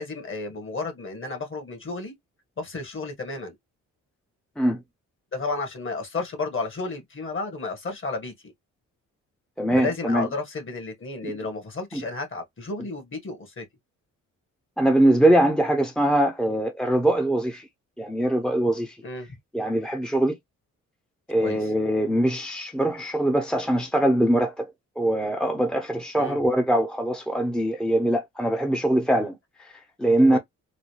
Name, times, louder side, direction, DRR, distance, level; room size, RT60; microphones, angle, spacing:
voice 1, 0.0-2.1 2.6-3.6 5.3-8.5 9.7-13.7 19.0-19.4 21.4-21.7 26.2-26.4 30.3-30.4, left 3 dB, 40° left, 1.7 m, -32 dB
voice 2, 9.6-10.3 11.9-12.0 14.8-17.7 18.0-19.0 19.5-20.3 21.3-24.7 25.0-29.3 29.6-29.7 30.0-30.4, right 1 dB, ahead, 0.7 m, -22 dB
3.9 x 2.2 x 3.2 m
cardioid pair, 75°, 32 cm